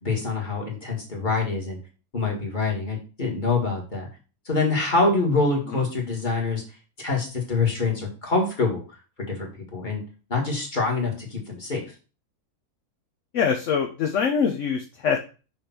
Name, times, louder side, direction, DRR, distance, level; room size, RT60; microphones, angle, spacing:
voice 1, 0.0-1.8 2.1-4.1 4.5-6.6 7.0-8.8 9.2-10.0 10.3-11.8, left 3 dB, 30° left, -1 dB, 1.8 m, -25 dB
voice 2, 13.3-15.2, left 6 dB, 60° left, 2 dB, 1.0 m, -24 dB
5.9 x 3.4 x 5.7 m, 0.34 s
omnidirectional pair, 1.6 m